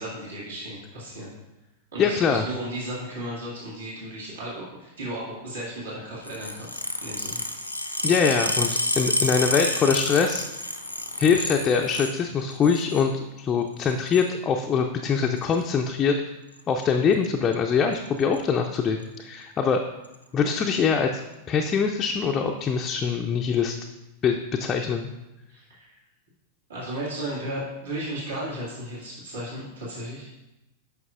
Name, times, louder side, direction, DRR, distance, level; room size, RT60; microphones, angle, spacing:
voice 1, 0.0-1.3 1.9-7.4 25.5-25.9 26.7-30.3, right 1 dB, 65° right, -6 dB, 2.0 m, -35 dB
voice 2, 2.0-2.4 8.0-8.7 9.0-10.4 11.2-16.2 16.7-19.8 20.3-21.1 21.5-23.8 24.2-25.1, left 6 dB, 25° left, 2 dB, 0.4 m, -23 dB
sound 1, 6.2-12.2 12.5-13.1 13.8-14.3 15.4-15.6 16.6-16.8 17.1-17.3 17.5-17.6 17.9-18.4 19.0-19.1 20.0-20.2, left 1 dB, 90° left, 0.5 m, -29 dB
9.0 x 5.9 x 2.4 m, 0.98 s
figure-of-eight pair, 90°, 0 cm